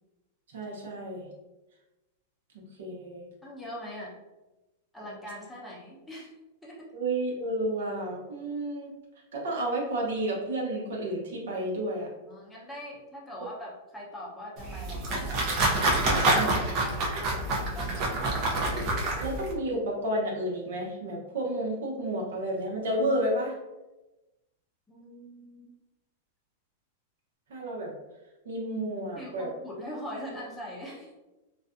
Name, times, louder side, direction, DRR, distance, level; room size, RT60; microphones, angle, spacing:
voice 1, 0.5-1.3 2.8-3.2 6.9-8.9 9.3-12.1 16.3-16.5 19.2-23.5 27.5-27.9 28.4-29.5, right 1 dB, 80° right, -2 dB, 0.8 m, -31 dB
voice 2, 3.4-4.1 4.9-6.3 6.6-6.9 12.3-15.4 15.8-18.3 24.9-25.7 29.2-31.1, equal, 5° left, -5 dB, 0.7 m, -42 dB
sound 1, 14.6-19.5, right 2 dB, 40° right, 0.6 m, -27 dB
2.5 x 2.2 x 2.5 m, 1.0 s
supercardioid pair, 140°, 0 cm